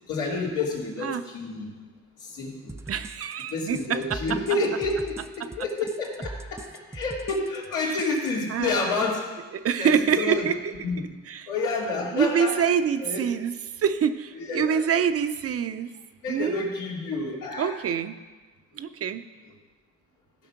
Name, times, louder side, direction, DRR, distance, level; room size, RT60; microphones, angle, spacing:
voice 1, 0.1-1.7 2.2-2.7 3.5-9.2 9.8-10.5 10.8-11.0 11.5-12.5 13.0-13.3 14.3-14.9 16.2-17.7, left 3 dB, 80° left, -3 dB, 2.9 m, -29 dB
sound 1, 2.7-8.3, right 2 dB, 10° right, 0.5 m, -41 dB
voice 2, 2.9-4.2 5.4-5.5 7.8-8.0 8.5-8.9 9.5-10.7 11.3-11.5 12.1-15.9 16.3-16.6 17.6-18.2 18.8-19.2, right 7 dB, 50° right, 10 dB, 0.7 m, -26 dB
14.5 x 5.5 x 5.9 m, 1.3 s
cardioid pair, 90°, 30 cm